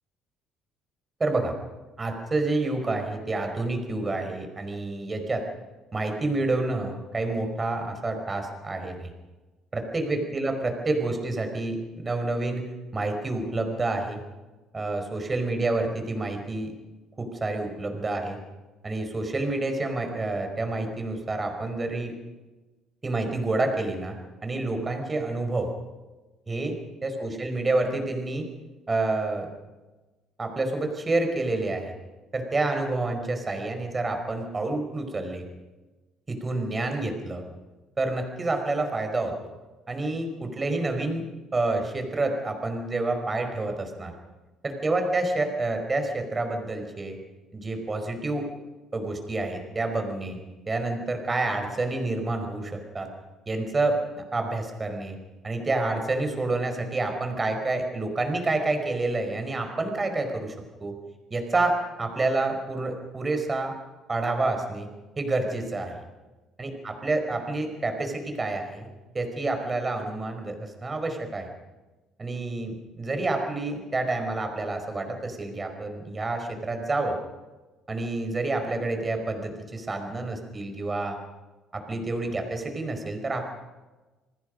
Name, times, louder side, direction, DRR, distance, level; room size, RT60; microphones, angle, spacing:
voice 1, 1.2-1.5 2.0-5.4 5.9-9.1 9.7-12.7 12.9-14.2 14.7-16.7 17.2-18.4 18.8-22.1 23.0-24.1 24.4-25.7 26.5-28.5 28.9-29.5 30.4-31.9 32.3-35.4 36.3-37.4 38.0-39.3 39.9-41.2 41.5-44.1 44.6-47.2 47.5-48.5 48.9-50.4 50.7-53.1 53.5-55.2 55.4-60.5 60.8-60.9 61.3-63.7 64.1-64.9 65.2-65.9 66.6-68.9 69.1-71.5 72.2-77.2 77.9-81.2 81.7-83.5, right 2 dB, 25° right, 5 dB, 4.9 m, -28 dB
28.0 x 20.0 x 5.3 m, 1.2 s
cardioid pair, 110°, 0 cm